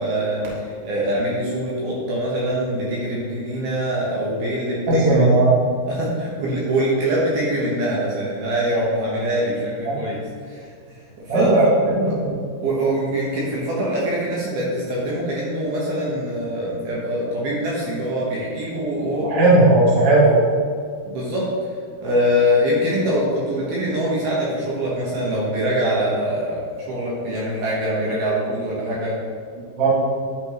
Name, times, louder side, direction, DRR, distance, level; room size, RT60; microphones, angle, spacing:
voice 1, 0.0-5.3 5.9-10.2 10.4-11.5 12.1-12.2 12.6-19.4 21.0-21.5 22.0-29.2, equal, 70° right, -5 dB, 2.7 m, -24 dB
voice 2, 4.9-5.5 9.8-9.9 11.3-12.3 19.2-20.4 29.8-30.0, right 2 dB, 50° right, -6 dB, 1.7 m, -16 dB
11.0 x 5.3 x 3.0 m, 2.1 s
omnidirectional pair, 5.3 m